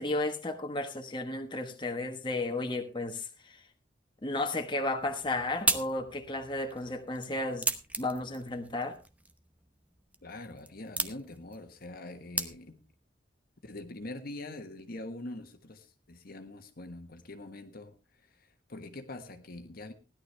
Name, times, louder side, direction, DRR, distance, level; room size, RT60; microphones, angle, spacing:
voice 1, 0.0-3.3 4.2-7.7 8.0-9.0, left 2 dB, 25° left, 1.3 m, -33 dB
sound 1, 5.0-13.0, right 2 dB, 10° right, 0.9 m, -37 dB
voice 2, 10.2-12.8 13.6-17.9 18.3-19.9, left 2 dB, 55° left, 1.4 m, -44 dB
16.0 x 11.5 x 3.4 m
head